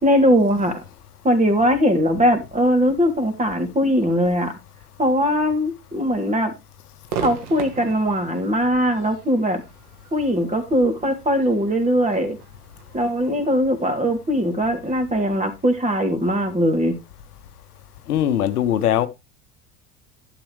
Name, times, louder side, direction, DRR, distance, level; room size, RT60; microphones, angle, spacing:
voice 1, 0.0-0.8 1.2-4.5 5.0-6.5 7.2-9.6 10.1-12.4 12.9-16.9, equal, 15° right, 3.0 m, -20 dB
Crowd / Fireworks, 7.1-14.4, right 7 dB, 75° right, 2.0 m, -38 dB
voice 2, 18.1-19.1, left 10 dB, 85° left, 0.9 m, -20 dB
11.5 x 8.3 x 3.3 m
hypercardioid pair, 75°, 45 cm